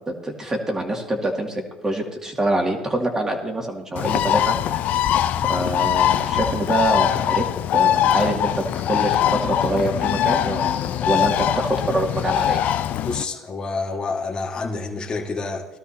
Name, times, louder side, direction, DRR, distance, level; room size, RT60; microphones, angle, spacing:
voice 1, 0.1-4.6 5.3-7.4 7.7-12.6, right 1 dB, 20° right, 1 dB, 2.5 m, -25 dB
Bird, 4.0-13.2, left 11 dB, 55° left, 0.6 m, -22 dB
voice 2, 13.0-15.7, left 3 dB, 25° left, -1 dB, 2.0 m, -28 dB
18.5 x 12.5 x 2.9 m, 1.1 s
supercardioid pair, 95°, 3 cm